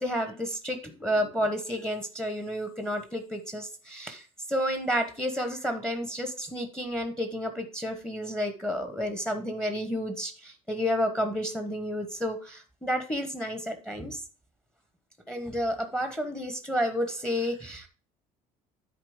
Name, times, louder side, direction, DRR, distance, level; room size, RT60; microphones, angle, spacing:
voice 1, 0.0-14.2 15.3-17.9, equal, 5° left, 7 dB, 1.1 m, -31 dB
9.8 x 4.2 x 5.0 m, 0.38 s
cardioid pair, 155°, 14 cm